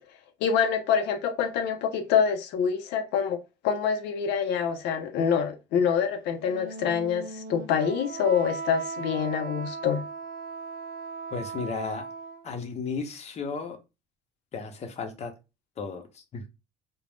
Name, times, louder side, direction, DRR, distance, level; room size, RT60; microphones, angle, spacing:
voice 1, 0.4-3.4 3.6-10.0, left 7 dB, 85° left, 0.4 m, -26 dB
Wind instrument woodwind instrument, 6.4-12.6, right 5 dB, 55° right, 0.4 m, -38 dB
voice 2, 11.3-12.0 12.4-13.8 14.5-15.3 15.8-16.4, left 5 dB, 40° left, 0.7 m, -34 dB
2.4 x 2.0 x 3.4 m
cardioid pair, 110°, 17 cm